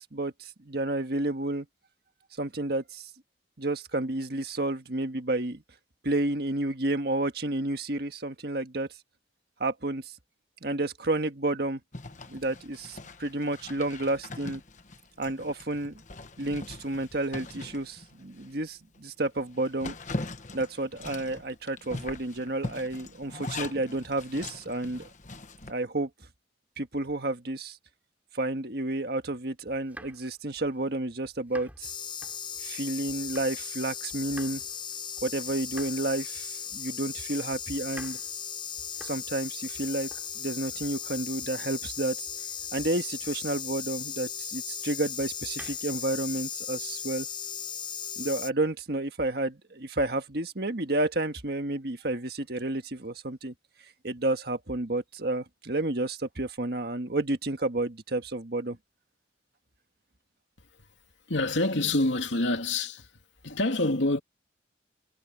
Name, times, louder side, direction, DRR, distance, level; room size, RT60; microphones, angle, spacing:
voice 1, 0.0-1.7 2.4-3.1 3.6-5.6 6.0-8.9 9.6-10.1 10.6-11.8 12.3-14.6 15.2-16.0 16.4-19.9 20.5-25.1 25.7-26.1 26.8-27.8 28.3-31.9 32.6-34.6 35.2-38.2 39.0-40.1 40.3-42.2 42.7-47.3 48.2-53.5 54.0-58.8, right 2 dB, 55° right, 1.6 m, -31 dB
Zipper (clothing), 11.9-18.5 18.9-19.0 19.4-25.7, left 2 dB, 40° left, 1.2 m, -41 dB
sound 1, 29.7-33.8 34.1-44.0 45.0-46.2, right 1 dB, 10° right, 4.3 m, -52 dB
sound 2, 31.8-48.5, left 7 dB, 25° left, 5.8 m, -37 dB
voice 2, 61.3-63.1 63.4-64.2, left 2 dB, 75° left, 2.7 m, -26 dB
head